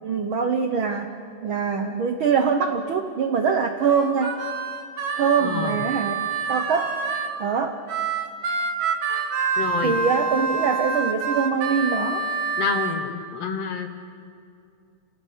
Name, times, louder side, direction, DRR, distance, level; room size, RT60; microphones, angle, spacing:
voice 1, 0.0-4.4 5.2-7.0 7.4-7.8 9.8-12.2, right 6 dB, 80° right, 6 dB, 1.1 m, -23 dB
Harmonica, 3.8-7.3 7.9-13.0, right 5 dB, 65° right, 3.0 m, -27 dB
voice 2, 5.4-5.9 9.6-10.0 12.6-13.9, left 6 dB, 60° left, 7 dB, 2.0 m, -28 dB
28.0 x 18.0 x 8.5 m, 2.4 s
omnidirectional pair, 3.8 m